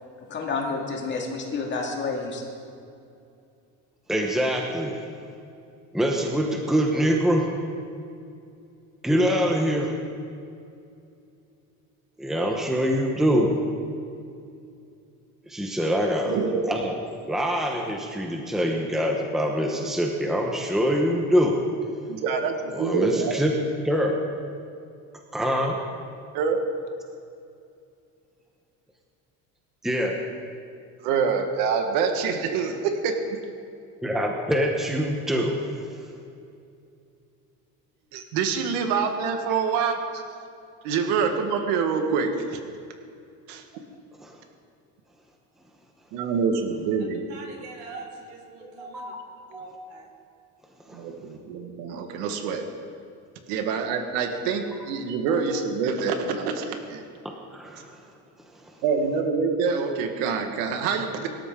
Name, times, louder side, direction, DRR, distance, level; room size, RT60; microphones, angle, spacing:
voice 1, 0.2-2.4, left 4 dB, 35° left, 0 dB, 2.3 m, -29 dB
voice 2, 4.1-5.0 5.9-7.5 9.0-10.0 12.2-13.5 15.5-16.4 16.7-16.9 17.3-21.6 22.7-23.5 23.8-24.1 25.3-25.8 29.8-30.2 34.0-35.6 44.2-44.4 48.6-49.1 49.5-49.7 50.9-51.0 57.5-57.9, equal, ahead, 1 dB, 1.0 m, -24 dB
voice 3, 16.2-16.8 22.1-23.4 26.3-26.6 31.0-33.4 38.1-40.2 40.8-42.6 43.5-43.6 46.1-47.3 50.9-52.7 53.5-57.0 58.8-61.3, right 5 dB, 85° right, 5 dB, 1.7 m, -26 dB
voice 4, 47.3-49.1 49.5-50.1, right 3 dB, 55° right, 1 dB, 3.7 m, -43 dB
23.5 x 12.5 x 3.8 m, 2.5 s
cardioid pair, 160°, 33 cm